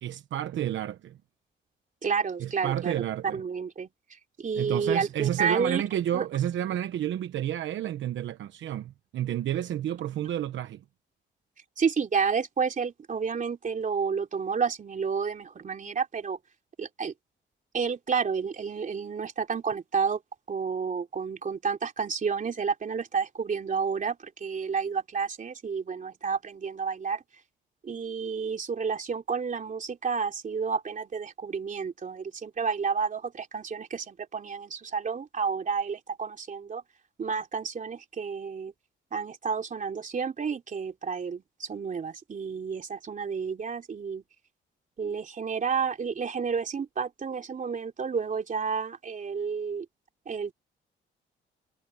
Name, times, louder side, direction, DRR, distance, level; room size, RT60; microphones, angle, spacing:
voice 1, 0.0-1.2 2.4-3.4 4.5-10.8, right 11 dB, 70° right, 1.1 m, -30 dB
voice 2, 2.0-3.0 3.3-3.9 4.4-5.8 6.1-6.2 11.8-16.4 16.8-17.1 17.7-20.2 20.5-27.2 27.8-36.8 37.2-38.7 39.1-44.2 45.0-49.9 50.3-50.5, right 6 dB, 40° right, 3.3 m, -30 dB
cardioid pair, 90°, 20 cm